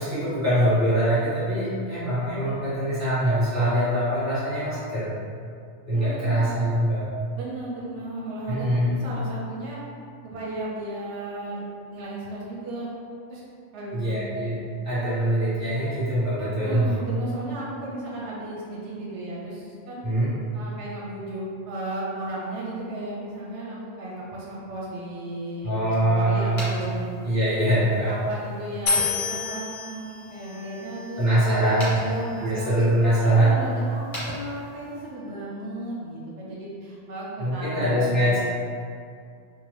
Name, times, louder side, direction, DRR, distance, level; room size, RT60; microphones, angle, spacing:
voice 1, 0.0-5.1 5.9-7.1 8.5-9.0 13.9-16.9 20.0-20.3 25.6-26.7 27.2-28.2 31.2-31.9 32.4-33.6 37.4-38.4, right 1 dB, 15° right, -13 dB, 1.1 m, -23 dB
voice 2, 5.9-6.6 7.3-9.8 10.2-11.6 11.9-12.9 13.3-13.4 13.7-14.1 16.4-20.1 20.5-27.1 28.1-32.8 33.2-38.4, right 1 dB, 85° right, -5 dB, 0.9 m, -35 dB
sound 1, 26.4-35.1, equal, 35° left, 0.9 m, -41 dB
sound 2, 28.9-32.1, left 4 dB, 70° left, 0.8 m, -30 dB
2.8 x 2.1 x 3.2 m, 2.3 s
omnidirectional pair, 1.2 m